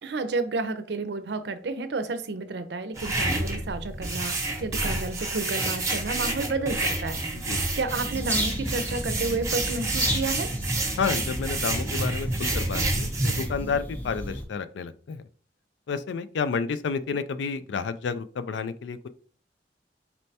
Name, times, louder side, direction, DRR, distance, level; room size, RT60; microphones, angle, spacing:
voice 1, 0.0-7.2 7.5-10.5, right 3 dB, 70° right, 10 dB, 0.5 m, -31 dB
sound 1, 2.9-13.5, right 2 dB, 15° right, 0.8 m, -29 dB
voice 2, 7.3-7.7 11.0-15.2 15.9-19.1, left 5 dB, 85° left, 13 dB, 0.4 m, -30 dB
sound 2, 7.9-14.4, equal, 10° left, 0.5 m, -34 dB
4.3 x 3.2 x 2.7 m, 0.43 s
head